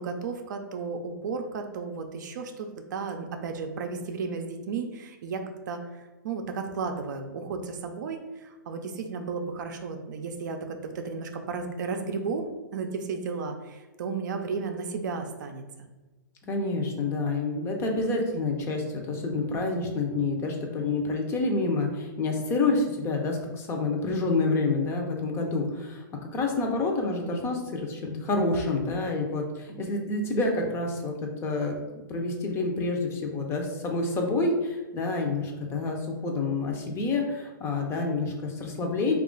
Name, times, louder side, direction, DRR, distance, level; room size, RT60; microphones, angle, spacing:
voice 1, 0.0-15.9, right 4 dB, 60° right, 5 dB, 0.5 m, -34 dB
voice 2, 16.5-26.0 26.3-31.1 31.4-31.7 32.1-39.2, left 3 dB, 25° left, 2 dB, 0.6 m, -28 dB
3.0 x 2.4 x 3.7 m, 1.2 s
hypercardioid pair, 125°, 11 cm